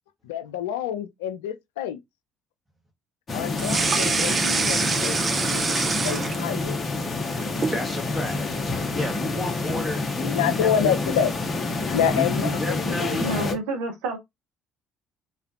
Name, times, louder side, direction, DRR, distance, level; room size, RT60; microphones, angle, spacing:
voice 1, 0.2-2.0 3.3-6.8 10.2-11.3 11.8-13.6, left 9 dB, 75° left, 0.3 m, -28 dB
sound 1, 3.3-13.5, left 3 dB, 35° left, 0.7 m, -28 dB
sound 2, 3.5-6.8 7.1-7.8, right 4 dB, 35° right, 0.4 m, -25 dB
voice 2, 7.7-8.4 8.9-11.2 12.1-13.3, left 1 dB, 10° right, 0.8 m, -32 dB
voice 3, 13.2-14.2, right 3 dB, 65° right, 0.8 m, -29 dB
2.4 x 2.2 x 2.5 m
figure-of-eight pair, 50°, 0 cm